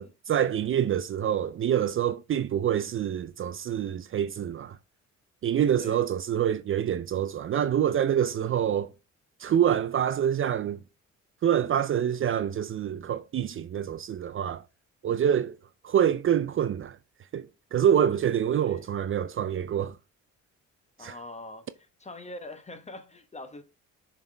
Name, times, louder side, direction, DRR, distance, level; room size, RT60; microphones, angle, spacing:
voice 1, 0.0-4.8 5.4-8.9 9.4-10.8 11.4-14.6 15.0-15.5 15.8-17.0 17.3-20.0 21.0-21.2, right 9 dB, 45° right, 0.4 m, -26 dB
voice 2, 18.5-18.9 21.0-21.7 22.0-23.6, left 2 dB, 20° left, 1.0 m, -43 dB
6.9 x 4.0 x 3.3 m
cardioid pair, 90°, 30 cm